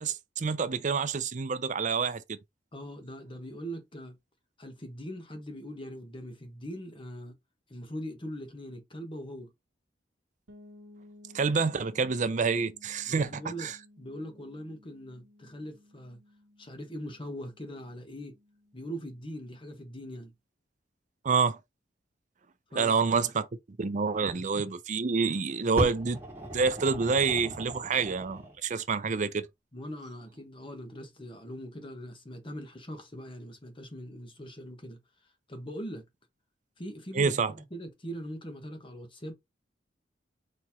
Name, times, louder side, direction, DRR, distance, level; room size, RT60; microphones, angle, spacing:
voice 1, 0.0-2.4 11.3-13.8 21.2-21.6 22.8-23.5 23.8-26.2 26.5-29.5 37.1-37.5, right 5 dB, 45° right, 0.5 m, -28 dB
voice 2, 2.7-4.2 4.6-7.3 7.7-9.5 13.1-13.7 14.0-16.2 16.6-18.4 18.7-20.3 22.7-23.3 24.2-24.3 29.7-35.0 35.5-36.0 36.8-39.3, equal, 30° left, 1.1 m, -41 dB
sound 1, 10.5-20.2, left 1 dB, 75° right, 1.2 m, -57 dB
Fire, 25.8-28.6 29.4-29.5, right 1 dB, 15° right, 1.7 m, -37 dB
4.4 x 3.0 x 3.5 m
head